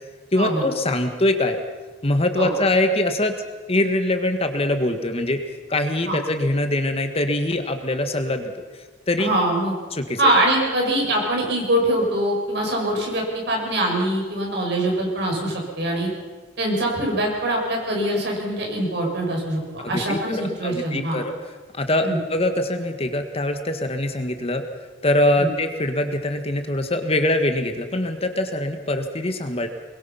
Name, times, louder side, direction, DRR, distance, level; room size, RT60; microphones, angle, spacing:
voice 1, 0.3-1.6 2.0-3.4 3.7-5.4 5.7-8.5 9.1-9.3 9.9-10.3 19.8-21.3 21.8-24.6 25.0-29.7, left 1 dB, 30° left, 7 dB, 1.6 m, -23 dB
voice 2, 9.2-9.7 10.2-16.1 16.6-21.2 22.0-22.2 25.4-25.5, right 1 dB, 65° right, -1 dB, 6.8 m, -23 dB
23.5 x 21.5 x 5.8 m, 1.3 s
head